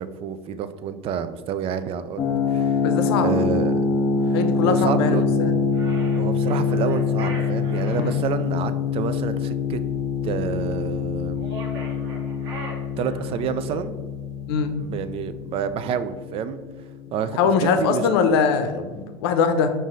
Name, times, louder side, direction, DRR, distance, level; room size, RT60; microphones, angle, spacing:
voice 1, 0.0-2.8 3.2-3.8 4.2-5.2 6.2-9.8 10.2-11.4 13.0-13.9 14.8-16.6 17.1-18.1, right 8 dB, 45° right, 12 dB, 0.4 m, -29 dB
sound 1, 2.2-16.9, left 5 dB, 55° left, 0.8 m, -25 dB
voice 2, 2.8-3.3 4.3-5.5 7.9-8.2 14.5-14.7 17.4-19.7, left 5 dB, 80° left, 8 dB, 0.6 m, -22 dB
sound 2, 5.7-8.2 11.3-13.5, right 1 dB, 90° right, 1.1 m, -39 dB
5.4 x 2.6 x 3.7 m, 1.3 s
hypercardioid pair, 90°, 13 cm